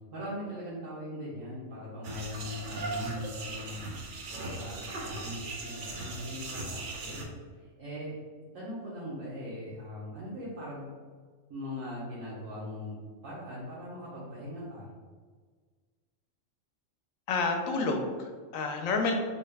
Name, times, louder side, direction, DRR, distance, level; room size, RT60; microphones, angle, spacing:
voice 1, 0.1-8.1 8.5-10.9 11.5-12.9 13.2-14.9, left 1 dB, 75° right, -10 dB, 1.3 m, -40 dB
sound 1, 2.0-7.2, right 2 dB, 55° right, 0.6 m, -38 dB
voice 2, 17.3-19.1, left 3 dB, 90° left, 4 dB, 1.0 m, -29 dB
3.8 x 2.3 x 3.2 m, 1.5 s
omnidirectional pair, 1.3 m